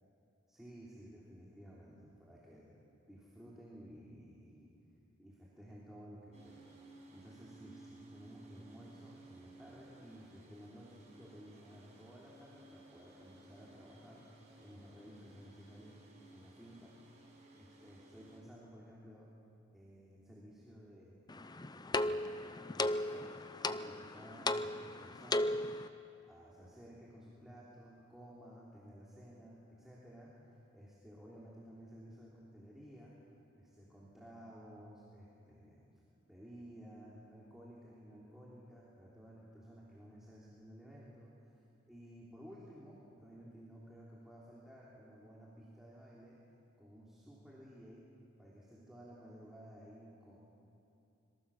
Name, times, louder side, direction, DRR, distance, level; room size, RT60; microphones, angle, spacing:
voice 1, 0.5-2.8 3.1-4.7 5.2-6.7 7.1-16.0 16.3-16.9 17.6-19.3 19.7-21.2 21.8-22.4 22.7-23.3 23.6-25.6 26.0-30.3 30.7-33.2 33.5-35.8 36.3-41.3 41.9-46.4 46.8-48.0 48.4-50.4, equal, ahead, -7 dB, 3.4 m, -55 dB
sound 1, 6.3-18.4, right 2 dB, 35° right, 5.7 m, -59 dB
sound 2, 21.3-25.9, left 2 dB, 20° left, 0.6 m, -36 dB
26.5 x 22.5 x 7.2 m, 2.7 s
head